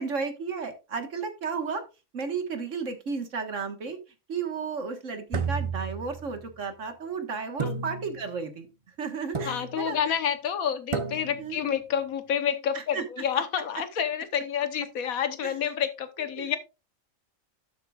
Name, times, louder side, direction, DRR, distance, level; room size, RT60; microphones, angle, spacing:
voice 1, 0.0-1.8 2.1-4.0 4.3-8.7 9.0-10.2 11.4-11.6 12.7-13.0 15.4-15.5 16.4-16.6, right 5 dB, 65° right, 7 dB, 1.8 m, -33 dB
sound 1, 5.3-6.5 7.6-8.4 9.3-10.0 10.9-11.6, right 5 dB, 30° right, 0.6 m, -32 dB
voice 2, 9.4-16.6, left 8 dB, 85° left, 11 dB, 1.5 m, -29 dB
11.5 x 8.0 x 2.4 m, 0.28 s
omnidirectional pair, 1.4 m